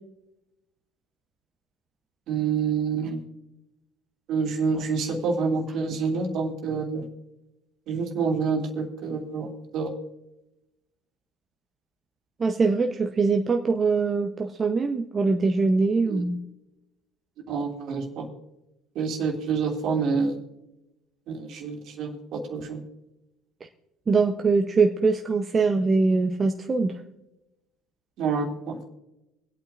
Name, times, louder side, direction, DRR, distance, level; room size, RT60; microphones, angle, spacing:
voice 1, 2.3-3.2 4.3-7.1 7.9-9.9 16.1-16.2 17.5-18.3 18.9-20.4 21.3-22.8 28.2-28.8, right 5 dB, 60° right, 2 dB, 2.4 m, -27 dB
voice 2, 12.4-16.4 24.1-26.9, right 4 dB, 30° right, 4 dB, 0.8 m, -23 dB
24.0 x 8.7 x 2.5 m, 0.94 s
hypercardioid pair, 75°, 0 cm